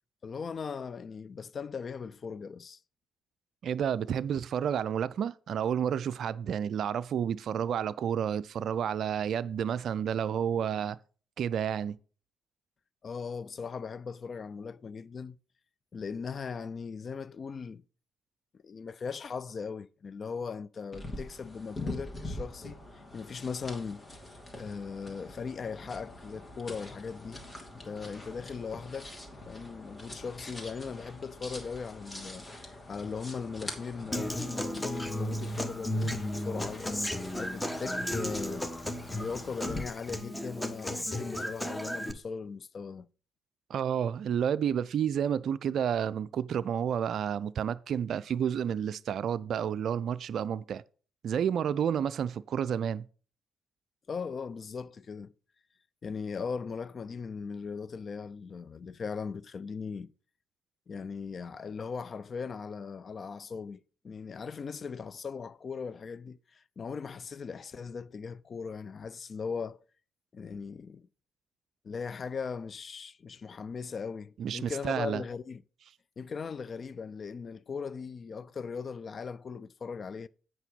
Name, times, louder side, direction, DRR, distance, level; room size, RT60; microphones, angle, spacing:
voice 1, 0.2-2.8 13.0-15.4 15.9-17.8 18.6-24.1 24.6-27.4 27.8-29.1 29.5-36.9 37.3-38.7 39.1-43.1 54.1-55.3 56.0-60.1 60.9-69.8 70.3-71.0 71.8-75.6 76.2-80.3, left 5 dB, 45° left, 0.4 m, -39 dB
voice 2, 3.6-11.0 11.4-12.0 43.7-50.8 51.2-53.1 74.4-75.2, right 8 dB, 60° right, 0.3 m, -30 dB
sound 1, 20.9-39.8, left 1 dB, 30° left, 2.6 m, -44 dB
Human voice / Acoustic guitar, 34.1-42.1, left 1 dB, 15° left, 1.3 m, -34 dB
8.2 x 5.9 x 5.2 m
hypercardioid pair, 40°, 0 cm